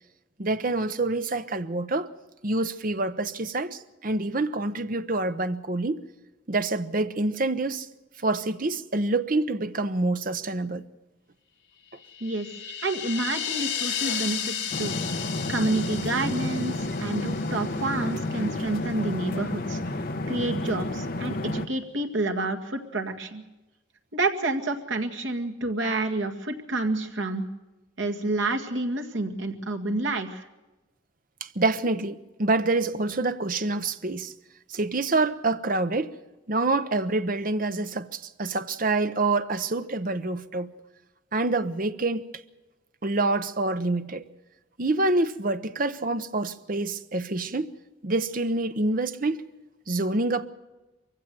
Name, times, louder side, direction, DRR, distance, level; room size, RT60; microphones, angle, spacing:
voice 1, 0.4-2.1 2.4-6.0 6.5-7.9 8.2-10.8 31.4-34.3 34.7-36.1 36.5-40.7 41.3-42.2 43.0-44.2 44.8-47.7 48.0-49.4 49.9-50.5, right 2 dB, 45° right, 0.8 m, -26 dB
sound 1, 12.0-18.2, left 8 dB, 65° left, 2.6 m, -34 dB
voice 2, 12.8-15.0 15.5-19.8 20.3-23.4 24.1-27.5 28.0-30.4, right 2 dB, 70° right, 1.9 m, -29 dB
sound 2, 14.7-21.7, left 1 dB, 45° left, 0.9 m, -31 dB
23.0 x 16.0 x 7.6 m
head